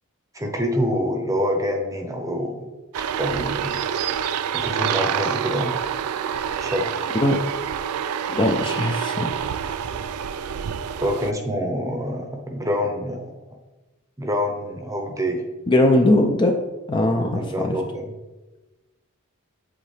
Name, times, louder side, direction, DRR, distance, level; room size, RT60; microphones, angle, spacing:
voice 1, 0.3-2.7 3.2-3.8 4.5-5.8 6.6-6.9 11.0-13.3 14.2-15.4 17.3-18.1, equal, 15° right, 3 dB, 0.8 m, -26 dB
sound 1, 2.9-11.3, right 8 dB, 85° right, 0.3 m, -27 dB
voice 2, 8.3-9.5 15.7-16.6 16.9-17.8, left 1 dB, 20° left, 2 dB, 0.4 m, -20 dB
7.8 x 3.9 x 3.3 m, 1.1 s
head